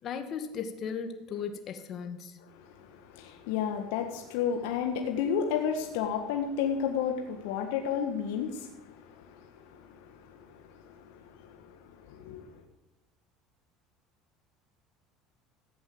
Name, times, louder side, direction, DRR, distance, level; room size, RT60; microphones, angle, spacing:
voice 1, 0.0-2.4, left 6 dB, 50° left, 7 dB, 2.0 m, -36 dB
voice 2, 2.9-8.7 9.2-9.4 9.7-9.8 10.1-10.2 10.8-10.9 11.4-11.6 12.2-12.4, left 7 dB, 80° left, 3 dB, 1.6 m, -31 dB
15.0 x 8.5 x 7.8 m, 1.0 s
supercardioid pair, 105°, 0 cm